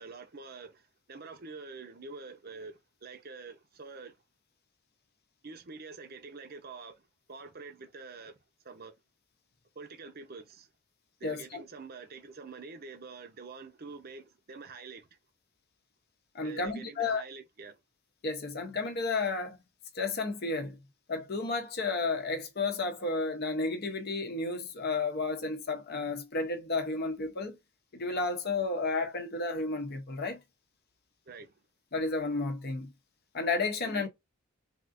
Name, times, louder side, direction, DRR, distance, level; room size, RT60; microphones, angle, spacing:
voice 1, 0.0-4.2 5.4-8.4 8.6-8.9 9.7-10.7 11.2-15.1 16.4-17.7 31.3-31.6 33.8-34.0, right 4 dB, 45° right, 0.7 m, -46 dB
voice 2, 11.2-11.6 16.3-17.2 18.2-19.6 19.9-20.8 21.1-27.6 27.9-30.4 31.9-32.9 33.3-34.1, left 3 dB, 50° left, 0.7 m, -32 dB
3.5 x 2.5 x 2.5 m
head